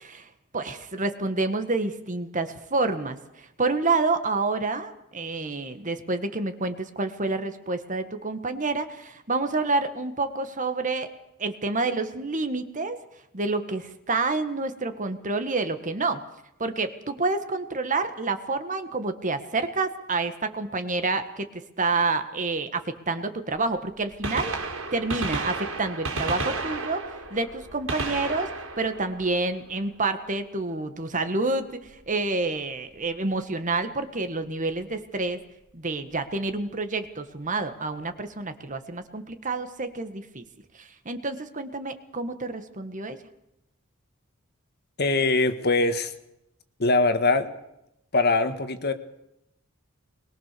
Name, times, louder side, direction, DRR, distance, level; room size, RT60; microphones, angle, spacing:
voice 1, 0.0-11.1 11.4-13.0 13.3-16.2 16.6-24.5 24.9-28.5 28.8-35.4 35.7-40.4 40.7-43.2, right 3 dB, 35° right, 9 dB, 1.7 m, -28 dB
Gunshot gunfire, 24.1-29.9 31.9-32.0 33.0-33.1 34.7-34.8 36.2-36.3 36.5-36.6, right 3 dB, 80° right, 4.1 m, -32 dB
voice 2, 45.0-46.1 46.8-47.5 48.1-48.9, left 3 dB, 50° left, 8 dB, 1.8 m, -22 dB
22.0 x 22.0 x 6.9 m, 0.84 s
head